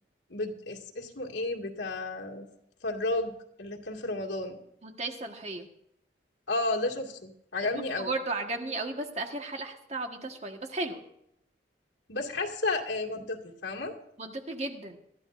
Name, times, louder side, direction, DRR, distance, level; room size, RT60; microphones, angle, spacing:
voice 1, 0.3-2.5 2.8-3.3 3.6-4.6 6.5-8.1 12.1-13.9, left 2 dB, 85° left, 0 dB, 2.2 m, -32 dB
voice 2, 4.8-5.7 7.7-11.0 14.2-15.0, right 2 dB, 35° right, 4 dB, 1.4 m, -35 dB
21.5 x 13.5 x 2.6 m, 0.77 s
head